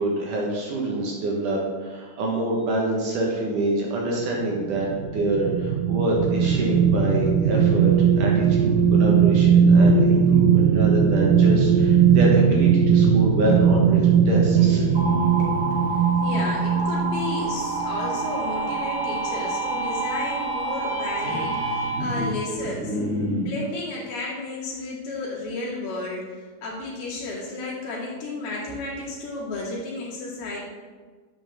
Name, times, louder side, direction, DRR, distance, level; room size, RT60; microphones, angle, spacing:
voice 1, 0.0-14.8, right 1 dB, 65° right, -2 dB, 2.5 m, -26 dB
sound 1, 4.6-17.5 17.9-18.1, right 7 dB, 85° right, 2.0 m, -19 dB
sound 2, 14.4-23.5, right 2 dB, 25° right, 2.3 m, -32 dB
sound 3, 14.9-22.3, right 2 dB, 45° right, 2.4 m, -29 dB
voice 2, 15.4-23.0 23.3-30.6, left 2 dB, 75° left, -5 dB, 4.2 m, -33 dB
11.0 x 7.8 x 3.5 m, 1.4 s
omnidirectional pair, 4.6 m